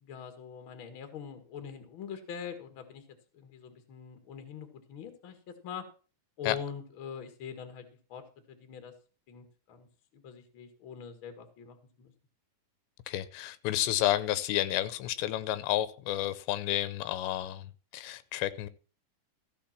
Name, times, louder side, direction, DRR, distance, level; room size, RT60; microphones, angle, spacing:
voice 1, 0.0-3.0 3.3-5.8 6.4-7.8 8.1-8.2 8.5-8.9 9.3-9.9 10.1-12.1, left 7 dB, 45° left, 1.7 m, -43 dB
voice 2, 13.1-18.7, left 14 dB, 90° left, 3.0 m, -31 dB
14.5 x 6.2 x 5.9 m
omnidirectional pair, 5.0 m